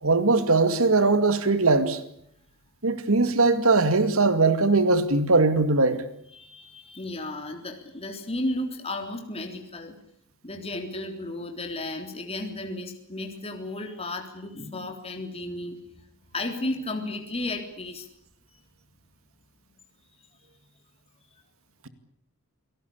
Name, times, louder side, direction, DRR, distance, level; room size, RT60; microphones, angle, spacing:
voice 1, 0.0-2.0 2.8-6.0, right 3 dB, 70° right, 2.2 m, -20 dB
voice 2, 6.3-9.9 10.4-15.8 16.3-18.1, left 2 dB, 30° left, 3.6 m, -33 dB
28.0 x 18.5 x 8.6 m
head